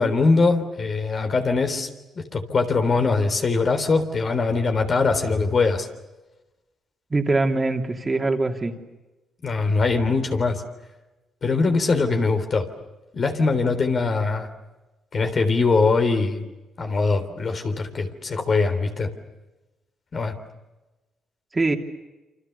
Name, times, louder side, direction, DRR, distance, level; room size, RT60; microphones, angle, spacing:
voice 1, 0.0-1.9 2.2-5.9 9.4-10.6 11.4-12.7 13.1-14.5 15.1-16.4 16.8-19.1 20.1-20.3, left 4 dB, 45° left, 6 dB, 3.6 m, -22 dB
voice 2, 7.1-8.7 21.5-21.8, right 3 dB, 25° right, 3 dB, 2.9 m, -22 dB
28.5 x 26.5 x 6.9 m, 1.1 s
cardioid pair, 90°, 0 cm